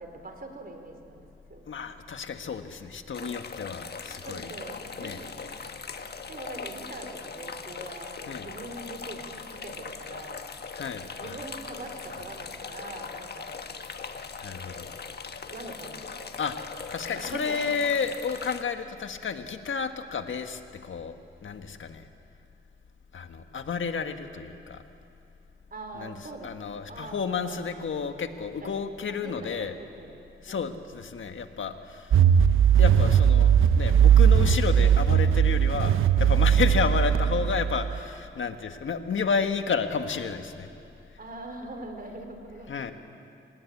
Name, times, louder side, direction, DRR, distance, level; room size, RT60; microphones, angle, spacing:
voice 1, 0.0-1.7 3.2-3.4 4.2-5.4 6.3-10.4 11.2-13.6 15.5-16.4 17.1-17.8 25.7-27.8 28.6-28.8 29.2-30.9 36.6-36.8 37.1-37.4 41.2-42.7, right 2 dB, 45° right, 5 dB, 4.0 m, -43 dB
voice 2, 1.7-4.5 5.0-5.2 8.3-8.5 10.7-11.4 14.4-14.9 16.4-21.1 21.4-22.1 23.1-24.8 25.9-26.2 26.4-29.7 30.4-32.2 32.8-40.7 42.7-42.9, left 6 dB, 70° left, 7 dB, 1.6 m, -31 dB
sound 1, 3.1-18.6, left 5 dB, 50° left, 1.4 m, -40 dB
sound 2, 32.1-38.0, right 8 dB, 75° right, 0.9 m, -19 dB
26.5 x 19.0 x 8.6 m, 2.6 s
cardioid pair, 70°, 21 cm